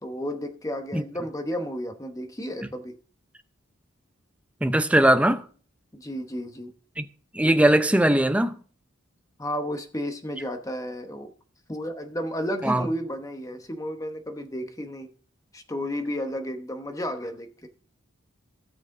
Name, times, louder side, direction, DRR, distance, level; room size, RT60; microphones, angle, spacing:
voice 1, 0.0-3.0 5.9-6.7 9.4-11.3 11.7-15.1 15.5-17.7, equal, 15° left, 1.0 m, -32 dB
voice 2, 4.6-5.4 7.0-7.1 7.3-8.5 12.6-12.9, right 1 dB, 5° right, 0.5 m, -20 dB
17.0 x 6.4 x 3.7 m
head